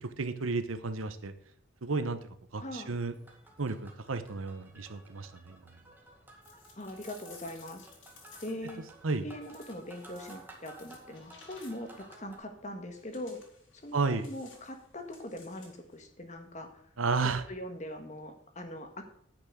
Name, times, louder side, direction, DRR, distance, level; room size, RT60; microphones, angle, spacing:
voice 1, 0.0-1.3 1.8-3.1 3.6-5.6 9.0-9.2 13.9-14.2 17.0-17.4, right 4 dB, 90° right, 11 dB, 0.9 m, -32 dB
voice 2, 2.6-2.9 6.8-7.9 8.4-8.8 9.2-13.4 13.7-16.8 17.2-19.0, left 1 dB, 35° left, 5 dB, 1.6 m, -42 dB
sound 1, 3.1-12.4, right 2 dB, 10° right, 1.9 m, -54 dB
sound 2, 6.4-8.8 9.4-12.0 12.9-15.9, left 4 dB, 75° left, 3.4 m, -56 dB
10.5 x 6.1 x 6.2 m, 0.66 s
head